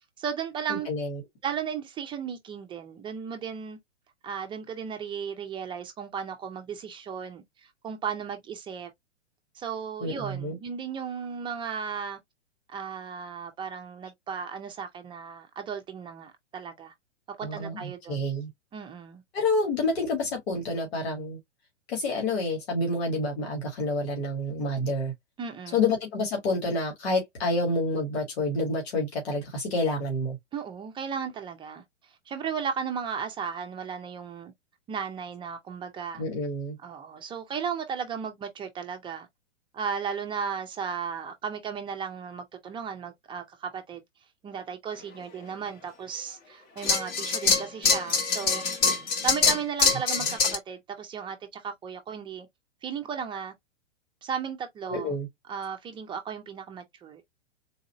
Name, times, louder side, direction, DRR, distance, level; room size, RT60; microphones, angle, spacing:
voice 1, 0.2-0.9 1.4-3.8 4.2-7.4 7.8-8.9 9.5-12.2 12.7-16.9 17.4-18.2 18.7-19.2 25.4-25.9 30.5-31.8 32.3-34.5 34.9-36.2 36.8-39.3 39.7-44.0 44.4-48.6 49.2-52.5 52.8-53.5 54.2-55.2 55.5-57.2, right 7 dB, 15° right, 0.6 m, -35 dB
voice 2, 0.7-1.2 10.0-10.6 17.4-18.5 19.3-21.4 21.9-25.1 25.7-30.4 36.2-36.8 54.9-55.3, left 2 dB, 60° left, 2.0 m, -28 dB
sound 1, 46.8-50.6, left 5 dB, 25° left, 1.0 m, -24 dB
4.1 x 2.5 x 3.0 m
hypercardioid pair, 115°, 36 cm